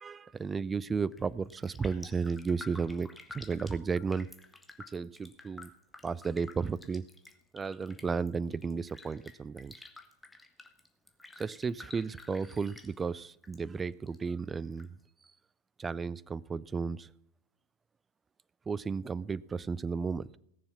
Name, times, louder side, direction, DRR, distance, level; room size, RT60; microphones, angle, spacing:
voice 1, 0.0-4.3 4.9-5.7 6.0-7.0 7.5-9.7 11.4-14.9 15.8-17.1 18.7-20.4, right 5 dB, 15° right, 0.4 m, -34 dB
Raindrop, 1.0-1.2 1.5-13.6 13.8-14.8 15.2-15.3, left 2 dB, 5° left, 1.4 m, -51 dB
18.5 x 7.0 x 5.8 m
figure-of-eight pair, 90°, 0 cm